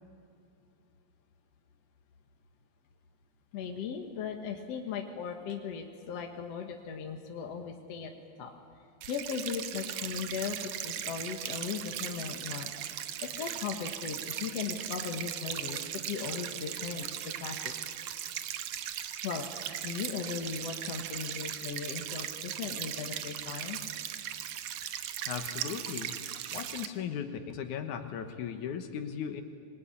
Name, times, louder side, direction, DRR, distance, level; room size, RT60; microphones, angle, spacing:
voice 1, 3.5-8.5 9.1-12.7 13.2-17.7 19.2-23.8, left 6 dB, 60° left, 3 dB, 2.4 m, -38 dB
sound 1, 9.0-26.9, right 10 dB, 70° right, 2.2 m, -38 dB
voice 2, 25.3-29.4, left 8 dB, 90° left, 6 dB, 2.7 m, -37 dB
25.5 x 20.5 x 9.8 m, 2.6 s
omnidirectional pair, 3.4 m